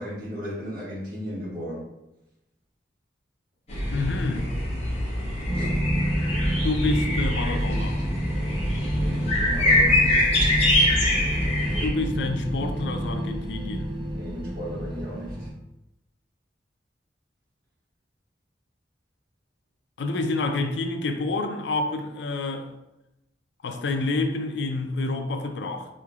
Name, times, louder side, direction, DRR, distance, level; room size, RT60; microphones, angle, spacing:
voice 1, 0.0-1.8 5.5-5.8 8.8-10.6 14.1-15.5, equal, 55° right, 1.3 m, -36 dB
sound 1, 3.7-11.9, left 1 dB, 35° left, 0.9 m, -24 dB
voice 2, 3.9-4.5 6.6-8.0 11.8-13.9 20.0-22.7 23.6-25.9, left 3 dB, 75° left, 0.4 m, -28 dB
sound 2, 5.5-15.5, equal, 25° right, 0.4 m, -28 dB
3.8 x 3.2 x 2.3 m
head